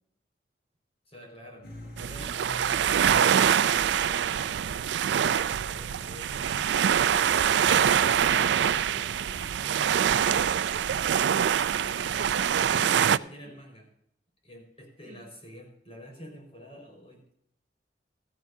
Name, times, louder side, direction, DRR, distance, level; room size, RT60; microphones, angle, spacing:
voice 1, 1.1-1.7 2.0-5.3 5.7-7.3 7.8-8.9 12.0-12.4 12.7-13.9 14.4-17.4, equal, 35° left, 1 dB, 5.0 m, -48 dB
sound 1, 1.6-13.1, equal, 60° left, 4.4 m, -50 dB
sound 2, 2.0-13.2, right 8 dB, 85° right, 0.4 m, -24 dB
voice 2, 7.9-11.4 11.7-12.3 12.6-13.6 15.0-15.2, right 1 dB, 50° right, -2 dB, 2.4 m, -49 dB
17.0 x 13.5 x 2.7 m, 0.71 s
head